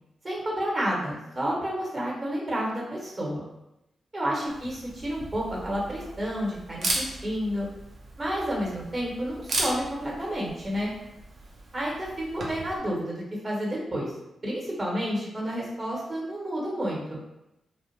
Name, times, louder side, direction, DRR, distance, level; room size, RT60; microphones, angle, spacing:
voice 1, 0.2-3.4 4.1-7.7 8.2-10.9 11.7-12.1 12.3-14.1 14.4-17.2, equal, 45° right, -4 dB, 1.1 m, -30 dB
Camera, 4.5-12.8, right 2 dB, 65° right, 0.6 m, -36 dB
2.3 x 2.1 x 3.0 m, 0.89 s
supercardioid pair, 40°, 0 cm